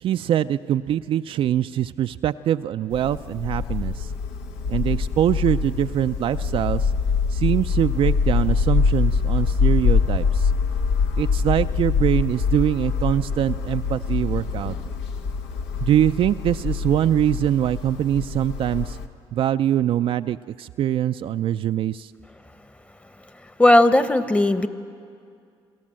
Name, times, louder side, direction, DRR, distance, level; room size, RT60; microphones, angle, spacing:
voice 1, 0.0-4.1 4.7-6.9 7.3-10.5 11.2-14.7 15.8-19.0 19.3-22.1, right 11 dB, 60° right, 10 dB, 0.4 m, -23 dB
sound 1, 2.9-19.1, left 5 dB, 85° left, 1.1 m, -24 dB
voice 2, 23.6-24.7, left 1 dB, 15° left, 12 dB, 1.0 m, -16 dB
27.5 x 13.5 x 7.6 m, 2.4 s
supercardioid pair, 75°, 11 cm